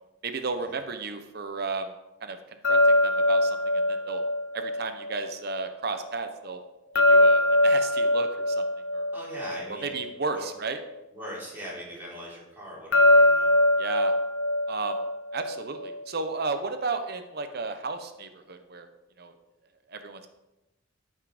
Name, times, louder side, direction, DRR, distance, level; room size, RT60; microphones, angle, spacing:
voice 1, 0.2-1.9 2.2-2.4 2.7-4.2 4.5-6.6 7.1-8.6 8.9-9.1 9.7-10.8 13.8-14.1 14.7-15.0 15.3-18.9 19.2-19.3 19.9-20.3, right 4 dB, 55° right, 7 dB, 0.8 m, -33 dB
sound 1, 2.6-5.7 7.0-10.5 12.9-16.0, left 1 dB, 80° left, 0.6 m, -23 dB
voice 2, 9.1-9.9 10.3-10.5 11.1-13.5, equal, 10° right, -6 dB, 3.9 m, -40 dB
14.0 x 5.6 x 5.0 m, 0.96 s
head